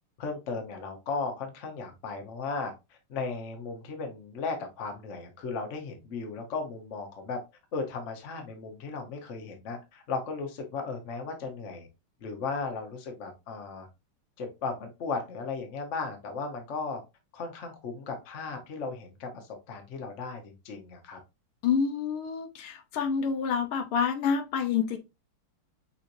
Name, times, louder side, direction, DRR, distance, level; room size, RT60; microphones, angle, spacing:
voice 1, 0.2-7.4 7.7-11.9 12.2-13.9 14.4-17.0 17.3-21.2, left 4 dB, 45° left, 1.0 m, -36 dB
voice 2, 21.6-25.0, left 6 dB, 75° left, 1.5 m, -28 dB
5.7 x 3.1 x 2.6 m
omnidirectional pair, 2.4 m